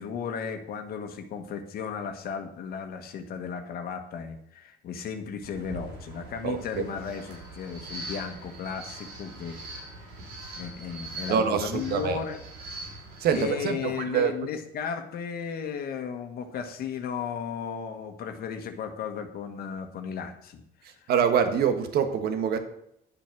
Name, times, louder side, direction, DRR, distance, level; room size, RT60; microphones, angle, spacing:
voice 1, 0.0-9.6 10.6-12.4 13.3-20.6 20.9-21.1, left 7 dB, 65° left, 7 dB, 1.4 m, -35 dB
sound 1, 5.4-13.4, right 2 dB, 85° right, 5.5 m, -42 dB
voice 2, 6.4-6.8 11.3-12.2 13.2-14.3 21.1-22.6, right 7 dB, 70° right, 8 dB, 1.5 m, -25 dB
10.5 x 7.6 x 6.0 m, 0.75 s
cardioid pair, 110°, 17 cm